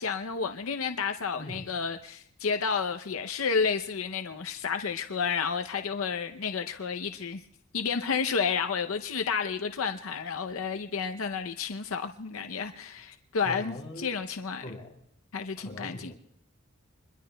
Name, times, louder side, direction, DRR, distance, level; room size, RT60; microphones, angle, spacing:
voice 1, 0.0-7.4 7.7-14.8 15.3-16.1, left 5 dB, 80° left, 7 dB, 0.6 m, -31 dB
voice 2, 1.4-1.7 13.4-14.1 14.6-15.0 15.6-16.1, left 1 dB, 25° left, -1 dB, 3.2 m, -41 dB
27.0 x 22.0 x 2.2 m, 0.69 s
head